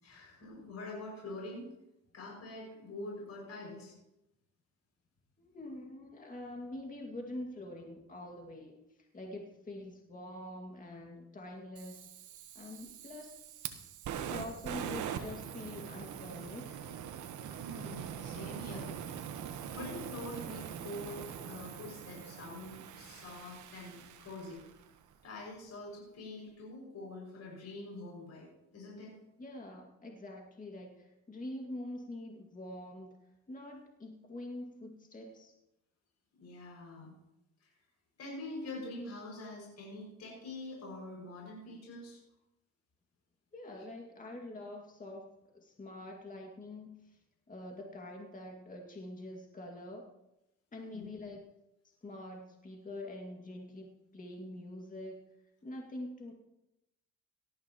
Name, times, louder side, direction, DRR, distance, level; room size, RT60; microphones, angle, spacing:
voice 1, 0.0-1.7 2.1-3.9 17.6-18.9 19.7-24.6 25.2-29.1 36.4-37.1 37.6-37.7 38.2-42.2 50.9-51.1, left 2 dB, 60° left, -3 dB, 6.1 m, -45 dB
voice 2, 5.4-8.8 9.1-12.1 12.6-13.4 14.1-16.8 29.4-33.1 33.5-35.5 43.5-45.3 45.5-47.2 47.5-50.1 50.7-51.5 52.0-55.2 55.6-56.3, left 1 dB, 25° left, 1 dB, 2.1 m, -45 dB
Fire, 11.8-24.9, right 8 dB, 80° right, 1.2 m, -43 dB
18.0 x 13.5 x 3.0 m, 0.89 s
cardioid pair, 90°, 30 cm